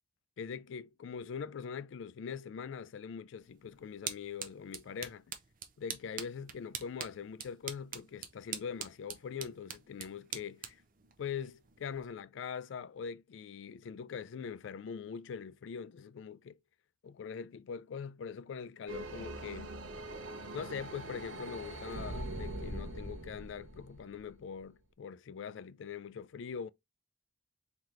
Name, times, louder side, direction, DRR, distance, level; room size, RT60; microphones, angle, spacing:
voice 1, 0.4-5.2 5.8-10.8 11.2-16.5 17.0-19.8 20.5-26.7, left 6 dB, 70° left, 0.3 m, -42 dB
sound 1, 3.4-12.1, right 8 dB, 45° right, 0.6 m, -46 dB
sound 2, 18.9-24.6, right 1 dB, 80° right, 0.9 m, -42 dB
3.9 x 2.9 x 3.2 m
head